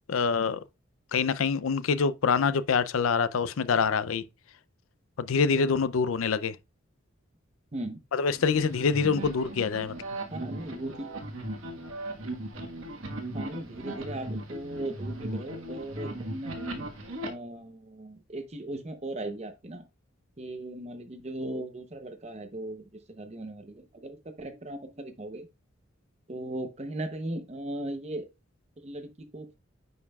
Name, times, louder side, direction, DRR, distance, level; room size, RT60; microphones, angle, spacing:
voice 1, 0.1-0.6 1.1-4.2 5.2-6.6 8.1-10.0, left 5 dB, 85° left, 0.5 m, -25 dB
sound 1, 8.3-17.3, right 1 dB, 80° right, 1.4 m, -38 dB
voice 2, 10.3-11.1 13.3-16.9 17.2-19.8 20.4-25.5 26.3-28.3 28.8-29.6, right 1 dB, 30° right, 0.8 m, -38 dB
9.4 x 5.4 x 2.3 m
head